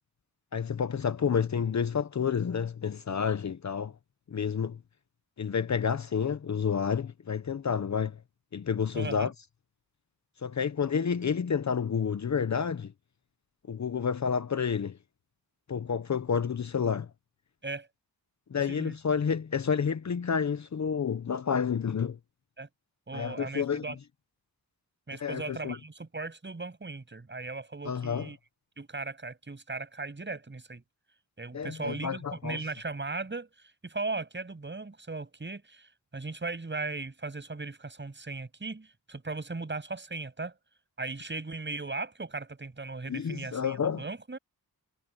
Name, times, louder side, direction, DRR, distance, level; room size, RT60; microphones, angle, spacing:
voice 1, 0.5-3.9 4.3-4.8 5.4-8.2 8.5-9.3 10.4-12.9 13.7-15.0 15.7-17.1 18.5-22.2 23.1-23.8 25.2-25.7 27.9-28.2 31.5-32.6 43.1-44.0, left 6 dB, 45° left, 1.0 m, -29 dB
voice 2, 8.9-9.3 17.6-17.9 18.7-18.9 22.6-22.7 23.1-24.0 25.1-28.4 28.8-30.8 31.4-33.5 33.8-40.5 41.0-44.4, right 3 dB, 30° right, 7.6 m, -37 dB
wide cardioid pair, 95°, 38 cm